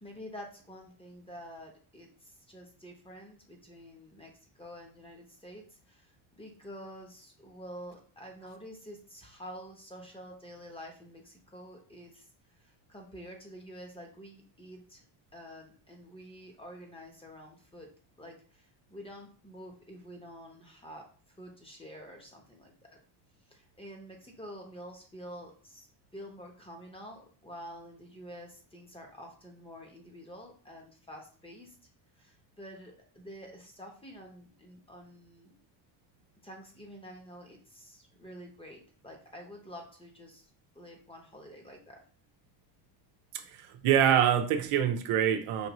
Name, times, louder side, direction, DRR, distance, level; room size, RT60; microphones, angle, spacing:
voice 1, 0.0-12.3 12.6-15.0 15.3-17.9 18.2-21.1 21.4-22.7 23.5-25.9 26.1-31.8 32.2-35.5 36.4-40.4 40.7-42.0, equal, 10° left, 1 dB, 0.9 m, -48 dB
voice 2, 43.3-45.7, right 9 dB, 90° right, 6 dB, 0.7 m, -26 dB
5.1 x 2.6 x 3.0 m, 0.41 s
cardioid pair, 130°, 48 cm